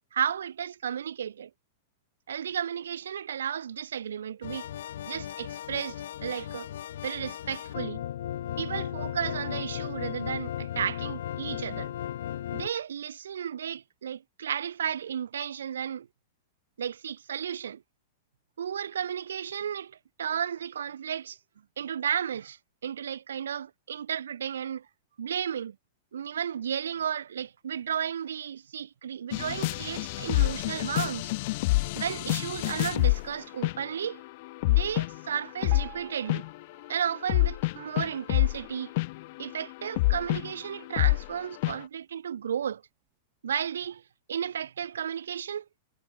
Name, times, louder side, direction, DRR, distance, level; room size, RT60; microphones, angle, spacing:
voice 1, 0.1-1.5 2.3-4.7 5.1-6.7 7.0-8.0 8.6-11.9 12.5-16.1 16.8-17.8 18.6-21.4 21.8-24.9 25.2-25.7 26.1-31.3 31.9-34.2 34.7-36.5 36.9-38.9 39.4-42.8 43.4-44.0 44.3-45.6, right 8 dB, 85° right, 1.7 m, -33 dB
sound 1, 4.4-12.7, left 11 dB, 75° left, 1.0 m, -36 dB
sound 2, 29.3-33.3 33.6-34.0 34.4-36.0 36.3-36.5 37.3-41.3 41.6-41.7, left 22 dB, 55° left, 0.5 m, -27 dB
Piano, 35.7-38.8 39.3-39.5 39.8-39.9 40.6-40.7 41.3-41.4, right 30 dB, 45° right, 2.2 m, -51 dB
hypercardioid pair, 120°, 0 cm